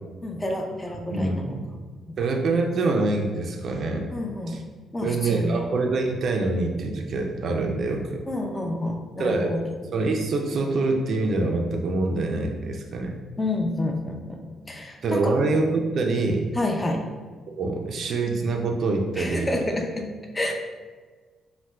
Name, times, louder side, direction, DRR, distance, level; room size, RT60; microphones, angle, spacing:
voice 1, 0.2-1.6 2.1-2.2 4.1-4.6 4.9-5.6 8.3-9.6 13.4-14.4 14.7-15.4 16.5-17.0 19.2-20.1 20.3-20.5, left 1 dB, 20° left, 2 dB, 0.4 m, -29 dB
voice 2, 1.1-1.6 2.2-4.1 4.5-4.6 5.0-8.2 9.2-9.6 9.9-13.2 15.0-16.5 17.5-19.5, right 3 dB, 60° right, 2 dB, 0.3 m, -25 dB
4.1 x 2.1 x 2.2 m, 1.4 s
cardioid pair, 90°, 0 cm